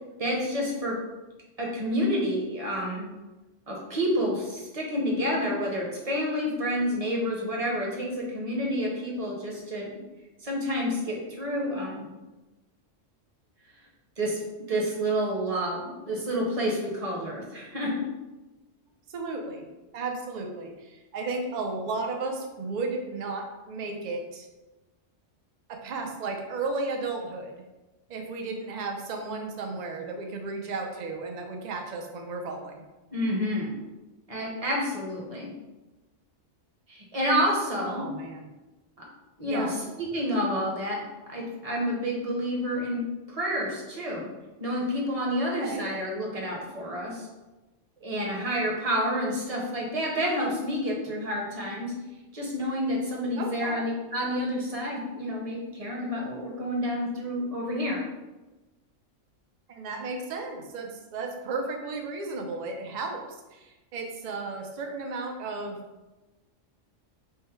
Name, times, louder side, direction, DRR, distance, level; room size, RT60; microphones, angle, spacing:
voice 1, 0.2-1.0 1.6-3.1 3.7-9.9 10.4-12.1 14.2-14.4 14.7-17.9 33.1-33.7 34.3-35.5 36.9-38.0 39.4-41.0 41.3-44.3 44.6-47.3 48.0-51.9 52.3-58.0, equal, 35° right, -3 dB, 0.8 m, -29 dB
voice 2, 19.1-19.7 19.9-24.5 25.7-27.6 28.1-32.8 37.9-38.5 39.4-39.8 45.6-45.9 53.4-53.9 59.7-65.8, right 3 dB, 55° right, 3 dB, 0.5 m, -34 dB
3.6 x 2.1 x 4.4 m, 1.1 s
omnidirectional pair, 1.3 m